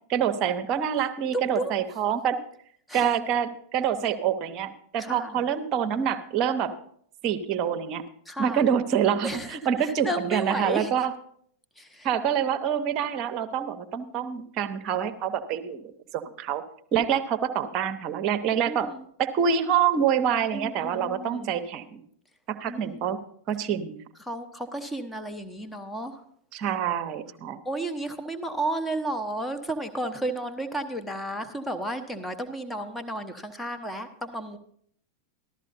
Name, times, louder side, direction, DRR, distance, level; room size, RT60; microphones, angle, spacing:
voice 1, 0.1-2.4 2.9-6.7 7.2-8.0 8.4-11.1 12.0-16.6 16.9-18.9 19.2-22.0 22.5-23.2 23.5-24.0 26.5-27.6, right 8 dB, 35° right, 10 dB, 0.8 m, -26 dB
voice 2, 1.3-1.7 2.9-3.1 5.0-5.4 8.3-8.6 9.2-10.9 11.8-12.1 18.7-19.0 20.5-21.5 22.7-23.1 24.2-26.2 26.6-26.7 27.6-34.6, right 1 dB, 5° left, 6 dB, 1.0 m, -33 dB
14.5 x 12.5 x 2.7 m, 0.63 s
figure-of-eight pair, 90°, 0 cm